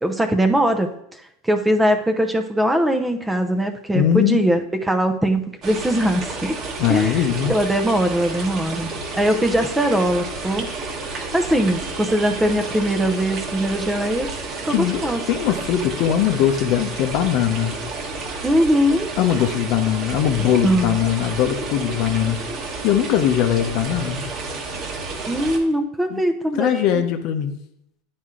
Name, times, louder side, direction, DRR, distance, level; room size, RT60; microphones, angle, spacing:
voice 1, 0.0-0.9 1.4-6.6 6.9-7.2 7.5-10.7 11.1-14.3 14.6-15.2 18.4-19.1 20.4-21.0 25.3-27.0, right 1 dB, 10° right, 6 dB, 0.7 m, -21 dB
voice 2, 3.9-4.5 6.8-7.5 14.7-17.8 19.2-22.4 22.8-24.3 26.1-26.2 26.6-27.5, left 10 dB, 55° left, 7 dB, 0.7 m, -20 dB
sound 1, 5.6-25.6, right 3 dB, 45° right, 1.3 m, -31 dB
9.4 x 4.3 x 3.7 m, 0.75 s
hypercardioid pair, 95°, 0 cm